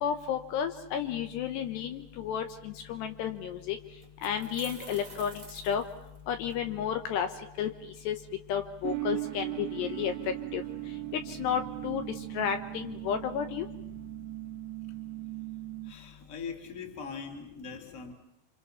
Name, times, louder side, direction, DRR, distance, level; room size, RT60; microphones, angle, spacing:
voice 1, 0.0-3.8 4.2-5.8 6.3-7.3 7.6-7.7 8.1-8.2 8.5-10.1 10.5-10.6 11.1-12.0 12.3-13.7, left 8 dB, 75° left, 7 dB, 3.0 m, -32 dB
sound 1, 4.0-6.5, right 3 dB, 25° right, 0.9 m, -48 dB
sound 2, 8.8-15.9, right 20 dB, 70° right, 2.9 m, -38 dB
voice 2, 15.8-18.1, left 5 dB, 25° left, 3 dB, 2.2 m, -41 dB
28.5 x 26.0 x 5.7 m, 0.82 s
omnidirectional pair, 5.3 m